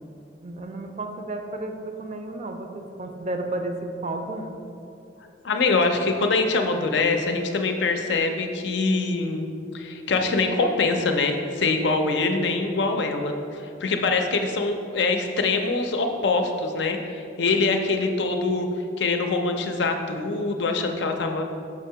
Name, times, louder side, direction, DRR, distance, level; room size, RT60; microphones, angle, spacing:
voice 1, 0.4-4.6, right 2 dB, 40° right, 4 dB, 0.4 m, -32 dB
voice 2, 5.4-9.5 9.7-18.7 19.0-21.4, left 3 dB, 70° left, 4 dB, 0.5 m, -24 dB
6.1 x 2.8 x 5.5 m, 2.6 s
head